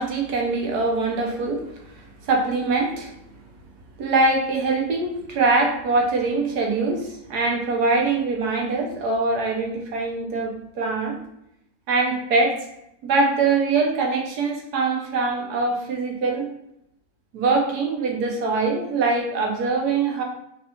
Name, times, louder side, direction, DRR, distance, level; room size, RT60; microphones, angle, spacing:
voice 1, 0.0-1.6 1.9-3.1 4.0-11.2 11.9-12.6 13.0-16.5 17.3-20.2, right 3 dB, 80° right, 0 dB, 1.4 m, -23 dB
5.3 x 2.4 x 2.8 m, 0.79 s
omnidirectional pair, 1.7 m